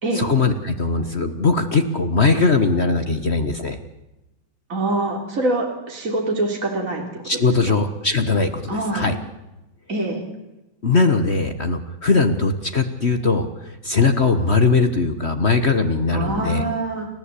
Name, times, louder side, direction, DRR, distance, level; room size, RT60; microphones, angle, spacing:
voice 1, 0.1-3.8 7.2-9.2 10.8-16.6, left 4 dB, 40° left, 8 dB, 1.4 m, -20 dB
voice 2, 4.7-7.2 8.7-9.1 9.9-10.2 16.1-17.1, right 2 dB, 45° right, 1 dB, 3.8 m, -24 dB
29.5 x 14.5 x 8.4 m, 0.97 s
omnidirectional pair, 1.9 m